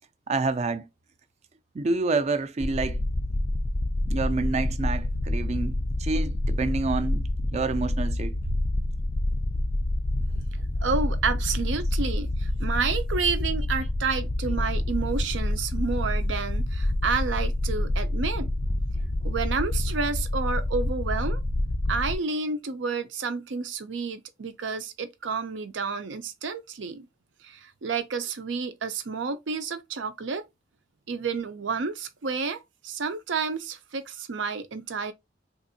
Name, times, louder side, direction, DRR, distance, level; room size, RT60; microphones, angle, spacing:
voice 1, 0.3-0.9 1.7-3.0 4.1-8.3, right 3 dB, 35° right, 0.4 m, -28 dB
sound 1, 2.6-22.2, left 1 dB, 25° left, 0.4 m, -27 dB
voice 2, 10.3-21.4 21.9-27.1 27.4-30.4 31.1-35.1, right 5 dB, 80° right, 0.6 m, -30 dB
3.5 x 2.5 x 2.7 m
head